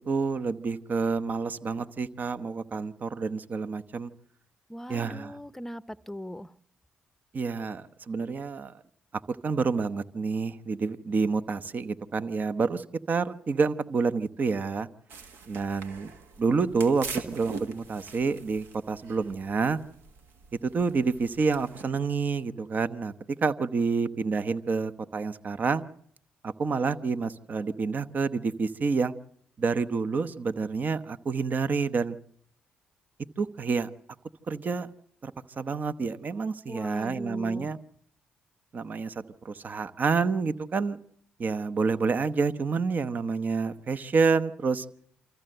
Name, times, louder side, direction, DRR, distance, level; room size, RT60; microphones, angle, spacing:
voice 1, 0.1-4.1 4.9-5.4 7.3-8.7 9.3-14.9 15.5-16.1 16.4-19.8 20.6-23.1 23.4-25.8 26.4-29.1 29.6-32.2 33.4-33.9 34.5-34.9 35.2-37.8 38.7-39.1 39.4-41.0 41.4-44.8, right 4 dB, 50° right, 0.9 m, -28 dB
voice 2, 4.7-6.5 36.7-37.7, equal, 5° left, 0.7 m, -39 dB
sound 1, 15.1-21.8, right 5 dB, 80° right, 1.7 m, -43 dB
25.0 x 14.5 x 7.8 m
supercardioid pair, 55°, 4 cm